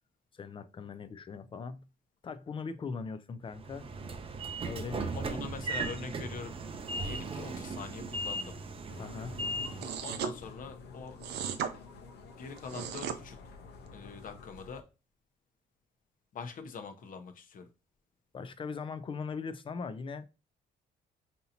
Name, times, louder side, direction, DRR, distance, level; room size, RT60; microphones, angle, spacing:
voice 1, 0.3-1.8 2.2-3.9 4.6-5.2 9.0-9.4 18.3-20.3, left 5 dB, 30° left, 0.4 m, -40 dB
Train / Sliding door, 3.6-10.1, right 2 dB, 30° right, 0.6 m, -37 dB
voice 2, 5.1-6.6 7.0-8.6 10.0-11.2 12.4-13.4 13.9-14.8 16.3-17.7, left 5 dB, 50° left, 0.8 m, -43 dB
sound 1, 8.9-14.8, left 4 dB, 80° left, 0.9 m, -50 dB
sound 2, 9.8-10.3 11.2-11.7 12.6-13.2, right 8 dB, 75° right, 0.6 m, -35 dB
5.4 x 2.8 x 2.7 m
cardioid pair, 110°, 17 cm